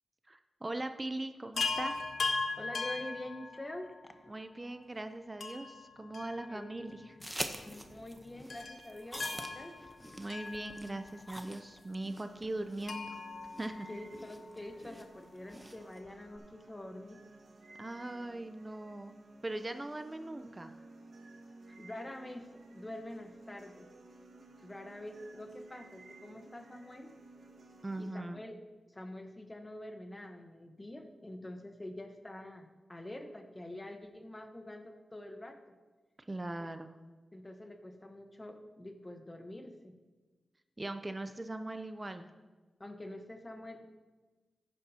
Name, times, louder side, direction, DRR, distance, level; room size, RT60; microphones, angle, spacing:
voice 1, 0.3-2.0 4.3-7.0 10.2-13.1 13.6-13.9 17.8-20.7 27.8-28.4 36.3-37.0 40.8-42.3, right 2 dB, 25° right, 8 dB, 0.6 m, -40 dB
Chime, 1.6-4.0 5.4-6.9 7.2-7.3 8.5-11.2 12.9-14.5 16.0-16.1 16.4-16.5, left 3 dB, 70° left, 1.2 m, -39 dB
voice 2, 2.6-4.1 6.5-7.0 7.6-9.7 13.9-17.2 21.7-23.9 24.6-27.1 28.0-35.8 36.6-36.7 37.3-39.9 42.8-43.9, left 1 dB, 20° left, 6 dB, 1.2 m, -46 dB
sound 1, 7.2-16.0, equal, 5° right, 0.9 m, -46 dB
sound 2, 12.1-28.1, right 2 dB, 75° right, 1.7 m, -56 dB
14.0 x 9.9 x 2.9 m, 1.3 s
cardioid pair, 65°, 0 cm